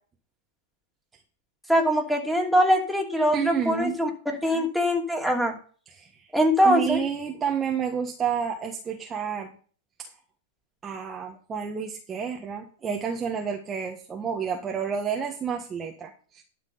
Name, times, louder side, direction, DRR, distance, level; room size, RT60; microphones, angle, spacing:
voice 1, 1.7-4.1 4.4-5.5 6.3-7.0, equal, ahead, 0 dB, 2.9 m, -22 dB
voice 2, 3.3-4.0 6.0-6.1 6.6-9.5 10.0-10.1 10.8-16.4, right 7 dB, 20° right, 1 dB, 1.4 m, -30 dB
12.0 x 6.2 x 5.7 m, 0.42 s
hypercardioid pair, 100°, 0 cm